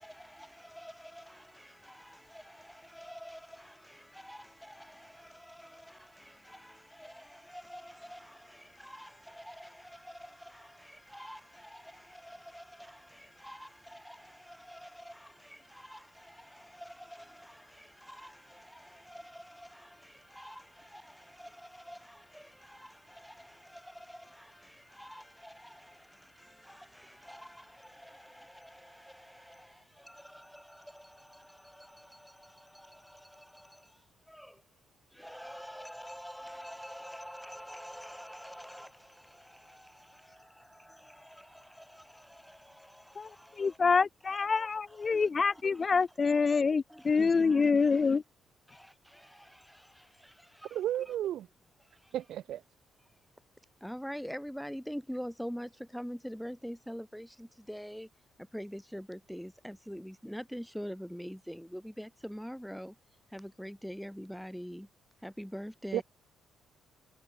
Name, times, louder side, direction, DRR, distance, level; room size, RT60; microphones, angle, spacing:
voice 1, 0.0-1.4 1.9-2.0 2.3-2.4 2.9-3.7 4.2-5.1 5.5-5.8 6.5-6.7 7.0-8.3 8.8-10.6 11.1-12.6 13.4-14.2 14.5-15.3 15.8-16.0 16.8-17.5 18.1-18.3 19.1-19.8 20.4-20.6 20.9-21.0 21.4-21.5 21.9-22.0 22.3-22.4 22.8-22.9 23.2-23.3 24.1-24.2 25.0-25.7 26.7-26.8 27.2-27.6 28.0-28.1 28.3-28.7 29.5-29.6 30.1-30.6 34.3-34.5 35.2-38.9 46.9-48.0 53.8-57.3 57.7-58.1 58.5-62.9 63.3-64.9 65.2-66.0, equal, ahead, 7.4 m, -44 dB
voice 2, 43.6-48.2, left 5 dB, 35° left, 0.6 m, -26 dB
voice 3, 50.7-51.5 52.1-52.6 65.9-66.0, right 12 dB, 75° right, 2.2 m, -33 dB
cardioid pair, 90°, 0 cm